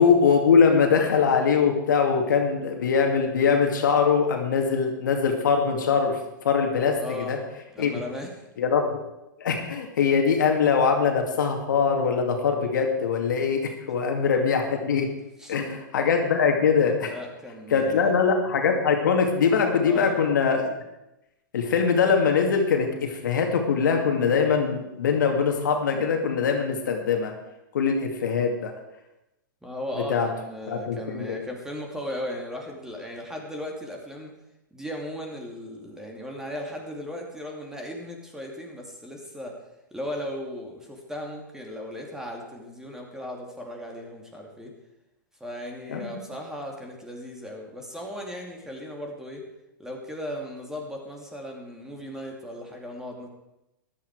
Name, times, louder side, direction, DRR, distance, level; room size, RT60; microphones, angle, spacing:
voice 1, 0.0-7.4 7.8-7.9 8.6-9.1 9.4-15.1 15.5-17.1 17.7-20.7 21.5-27.3 27.7-28.7 30.1-30.3 30.7-31.4 45.9-46.2, left 6 dB, 70° left, 3 dB, 2.4 m, -22 dB
voice 2, 7.0-7.3 7.7-8.3 15.4-15.6 17.1-18.1 19.8-20.1 29.6-34.4 34.7-39.5 39.9-44.7 45.4-49.4 49.8-53.3, left 1 dB, 5° right, 1 dB, 2.7 m, -37 dB
14.0 x 11.5 x 4.8 m, 0.91 s
hypercardioid pair, 110°, 11 cm